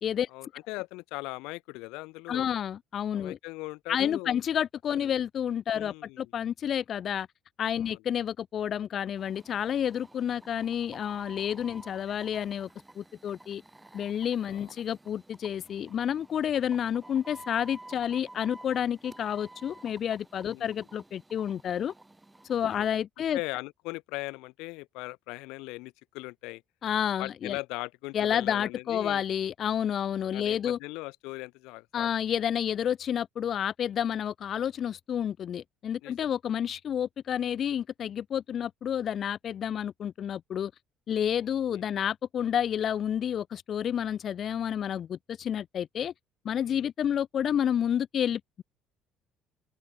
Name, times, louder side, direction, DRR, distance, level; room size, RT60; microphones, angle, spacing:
voice 1, 0.3-2.5 3.1-4.4 4.9-5.2 5.7-6.3 7.8-8.0 11.6-11.8 14.5-14.7 20.5-20.8 22.7-22.9 23.3-26.6 27.2-29.2 30.3-32.1 36.0-36.3 41.7-41.8 46.7-46.9, left 23 dB, 85° left, 0.7 m, -40 dB
voice 2, 2.3-3.4 3.9-7.3 7.6-12.7 13.0-13.6 13.9-21.9 22.5-23.4 26.8-27.6 28.1-30.8 31.9-40.7 41.1-46.1 46.4-48.6, left 9 dB, 50° left, 0.4 m, -30 dB
sound 1, 9.2-22.7, right 2 dB, 10° right, 2.1 m, -52 dB
open air
supercardioid pair, 85°, 0 cm